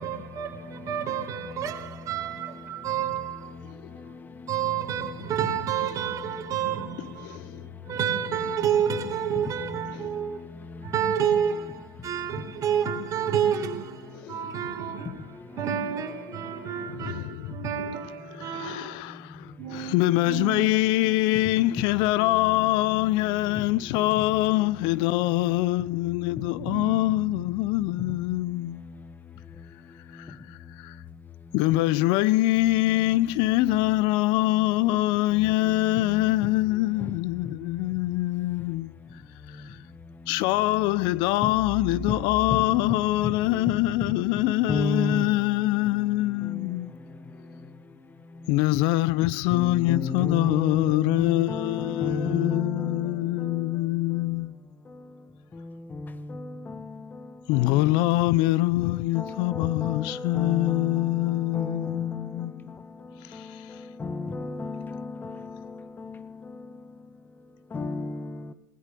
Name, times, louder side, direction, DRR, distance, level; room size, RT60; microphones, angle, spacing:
voice 1, 0.0-3.5 4.5-7.4 7.9-10.4 10.8-19.0 19.6-19.9 20.2-20.7 26.6-27.2, right 8 dB, 30° right, 4.8 m, -29 dB
voice 2, 7.0-7.6 9.9-10.1 14.1-14.5 16.9-17.5 18.3-28.8 30.1-31.0 31.5-38.9 40.3-46.9 48.5-54.5 57.5-62.6 63.3-63.7, left 18 dB, 45° left, 0.9 m, -24 dB
voice 3, 44.7-45.3 49.5-50.8 51.5-52.8 59.2-60.9 61.5-62.0 64.0-64.8 65.2-65.3 67.7-68.2, left 2 dB, 15° left, 1.6 m, -31 dB
20.0 x 19.5 x 6.9 m
hypercardioid pair, 110°, 11 cm